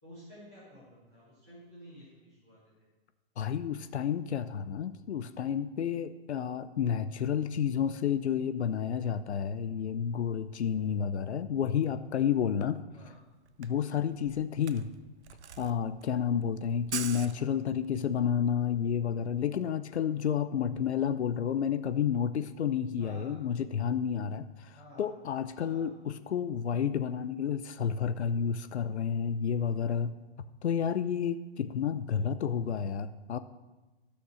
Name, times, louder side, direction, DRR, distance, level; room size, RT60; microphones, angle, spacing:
voice 1, 0.0-2.9 12.9-13.2 23.0-23.4 24.7-25.1 25.5-25.9, equal, ahead, -15 dB, 0.4 m, -52 dB
voice 2, 3.4-12.8 13.6-14.9 15.6-30.1 30.6-33.4, left 8 dB, 80° left, 12 dB, 0.8 m, -30 dB
Camera, 13.1-13.2 13.5-18.0, right 8 dB, 85° right, 0.9 m, -43 dB
12.5 x 6.8 x 6.3 m, 1.2 s
hypercardioid pair, 180°, 33 cm